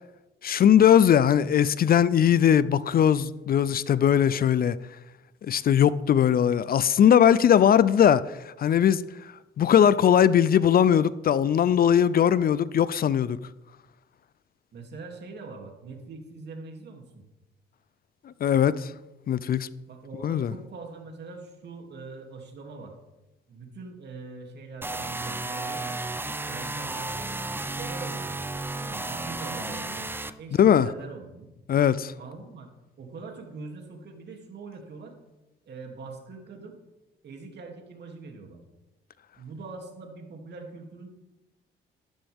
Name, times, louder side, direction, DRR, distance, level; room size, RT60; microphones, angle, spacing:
voice 1, 0.4-4.8 5.4-9.0 9.6-13.4 18.4-18.9 19.3-19.7 20.2-20.5 30.6-30.9 31.7-32.1, left 9 dB, 50° left, 0.5 m, -20 dB
voice 2, 14.7-17.2 19.9-22.9 23.5-26.0 26.4-27.3 27.7-28.4 28.7-30.1 30.4-31.5 32.2-32.7 33.0-35.1 35.7-36.8 37.2-38.6 39.4-41.1, right 3 dB, 60° right, 2.8 m, -42 dB
sound 1, 24.8-30.3, right 2 dB, 10° right, 0.6 m, -33 dB
13.0 x 12.5 x 3.6 m
cardioid pair, 90°, 20 cm